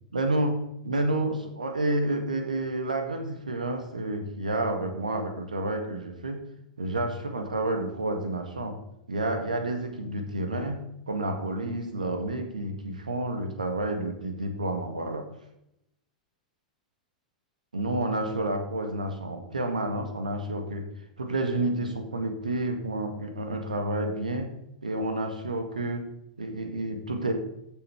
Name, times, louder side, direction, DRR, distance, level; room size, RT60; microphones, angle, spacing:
voice 1, 0.1-6.5 6.8-8.8 9.1-15.3 17.7-20.9 21.2-24.5 24.8-27.3, right 2 dB, 75° right, 6 dB, 1.8 m, -30 dB
14.5 x 7.0 x 3.5 m, 0.82 s
figure-of-eight pair, 95°, 4 cm